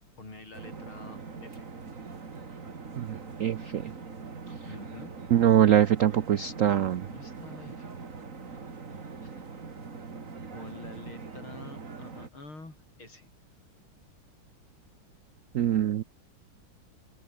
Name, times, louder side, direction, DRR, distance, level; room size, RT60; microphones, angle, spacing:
voice 1, 0.2-1.7 4.7-5.1 7.0-8.0 8.6-8.9 9.2-9.3 10.5-13.3, left 2 dB, 80° left, 8.4 m, -47 dB
sound 1, 0.5-12.3, right 4 dB, 40° right, 2.5 m, -42 dB
voice 2, 2.9-3.9 5.3-7.1 15.5-16.0, right 10 dB, 85° right, 0.7 m, -23 dB
open air
omnidirectional pair, 2.3 m